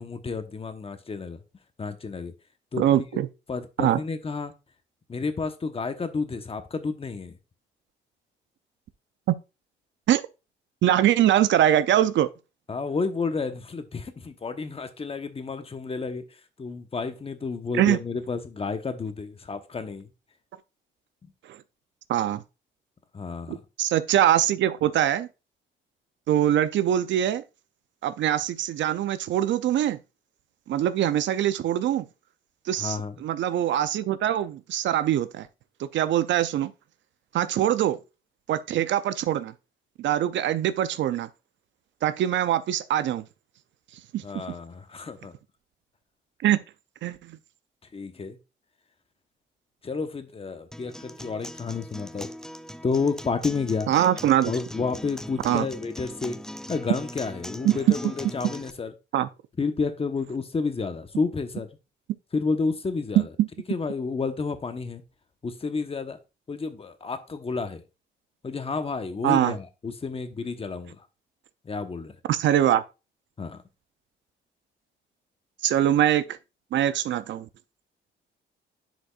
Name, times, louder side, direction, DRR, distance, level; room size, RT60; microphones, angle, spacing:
voice 1, 0.0-1.4 1.8-2.3 2.7-2.9 3.1-3.2 3.5-4.5 5.1-7.3 12.7-16.2 16.6-20.1 23.1-23.6 32.8-33.1 44.2-45.3 47.9-48.4 49.8-52.3 52.8-53.9 54.4-56.4 56.7-58.9 59.6-61.7 62.3-63.3 63.7-65.0 65.4-66.2 66.5-67.8 68.4-71.0 71.6-72.2 73.4-73.6, left 4 dB, 30° left, 1.0 m, -30 dB
voice 2, 2.8-3.3 3.8-4.0 9.3-9.4 10.1-10.2 10.8-12.3 17.7-18.0 21.5-21.6 22.1-22.4 23.5-25.3 26.3-27.4 28.0-30.0 30.7-32.0 32.7-35.5 35.8-36.7 37.3-38.0 38.5-39.5 40.0-41.3 42.0-43.2 44.1-44.2 46.4-46.6 47.0-47.4 53.9-54.5 55.4-55.7 57.6-57.9 59.1-59.3 63.2-63.5 69.2-69.6 72.3-72.8 75.6-76.4 76.7-77.5, right 11 dB, 70° right, 0.5 m, -23 dB
Acoustic guitar, 50.7-58.7, left 1 dB, 5° left, 0.3 m, -40 dB
10.0 x 5.1 x 2.4 m
cardioid pair, 90°, 20 cm